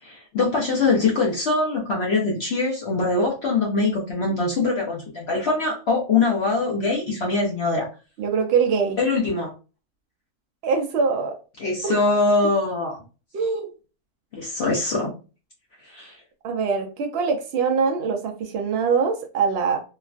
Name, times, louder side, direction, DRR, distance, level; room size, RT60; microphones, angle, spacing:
voice 1, 0.0-7.9 9.0-9.5 11.6-13.0 14.3-15.1 15.8-16.2, left 3 dB, 55° left, -2 dB, 0.8 m, -23 dB
voice 2, 8.2-9.0 10.6-11.3 11.8-11.9 13.3-13.7 16.4-19.8, right 5 dB, 75° right, 4 dB, 0.5 m, -23 dB
3.1 x 2.2 x 2.4 m, 0.33 s
omnidirectional pair, 1.6 m